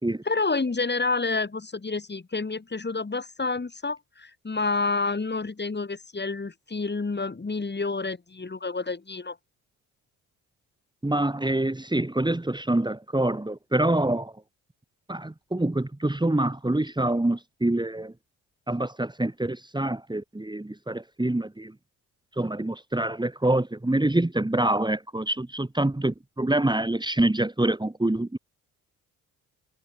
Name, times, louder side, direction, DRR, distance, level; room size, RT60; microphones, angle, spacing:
voice 1, 0.3-9.4, left 3 dB, 20° left, 5.5 m, -29 dB
voice 2, 11.0-14.3 15.1-18.1 18.7-21.7 22.4-28.4, right 1 dB, 10° right, 3.9 m, -26 dB
figure-of-eight pair, 50°, 46 cm